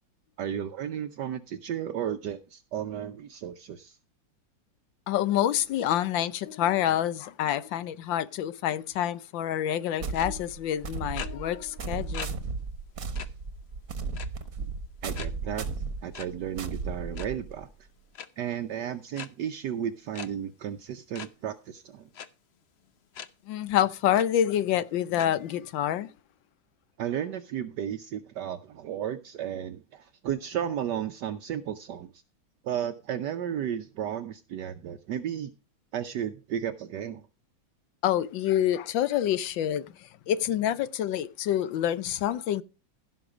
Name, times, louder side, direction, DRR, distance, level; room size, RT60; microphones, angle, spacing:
voice 1, 0.4-4.0 14.6-14.7 15.0-15.6 16.0-17.7 18.4-22.1 27.0-32.1 32.6-35.5 35.9-37.2, right 9 dB, 65° right, 1.2 m, -33 dB
voice 2, 5.1-12.4 23.5-26.1 38.0-42.6, left 11 dB, 75° left, 1.4 m, -27 dB
sound 1, 10.0-17.7, right 4 dB, 50° right, 1.4 m, -35 dB
sound 2, 10.1-10.3 11.1-11.3 12.1-12.3 12.7-12.8 13.1-13.3 14.1-14.5 15.1-15.3 16.1-16.3 17.0-17.3 18.1-18.3 19.1-19.3 20.1-20.3 21.1-21.3 22.1-22.3 23.1-23.3 23.7-23.8 24.1-24.2 25.1-25.3, left 7 dB, 60° left, 0.6 m, -39 dB
15.5 x 6.1 x 4.9 m
omnidirectional pair, 2.1 m